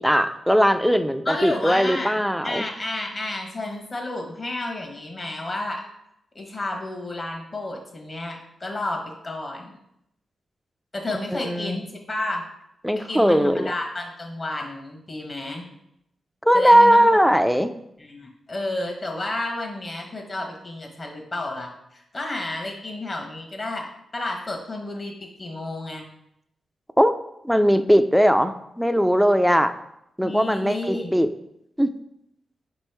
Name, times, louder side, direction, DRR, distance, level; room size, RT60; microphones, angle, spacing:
voice 1, 0.0-2.7 11.3-11.8 12.8-13.7 16.4-17.7 27.0-27.1 27.4-29.7 30.2-31.3 31.8-31.9, equal, ahead, 9 dB, 0.4 m, -19 dB
voice 2, 1.2-2.2 2.4-5.9 6.3-9.8 10.9-12.4 12.9-15.7 16.5-17.2 18.0-26.1 30.2-31.1, left 2 dB, 40° left, 2 dB, 1.2 m, -31 dB
5.3 x 3.0 x 3.3 m, 0.78 s
supercardioid pair, 45°, 0 cm